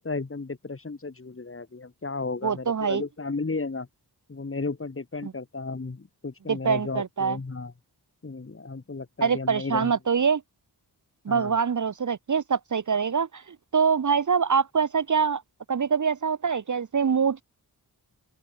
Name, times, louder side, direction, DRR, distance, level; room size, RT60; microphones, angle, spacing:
voice 1, 0.0-3.9 4.3-7.7 8.2-9.9 11.3-11.5, left 3 dB, 30° left, 2.5 m, -34 dB
voice 2, 2.4-3.0 5.2-5.3 6.5-7.4 9.2-10.4 11.2-15.4 15.7-17.4, right 6 dB, 50° right, 0.8 m, -24 dB
open air
wide cardioid pair, 110°, 40 cm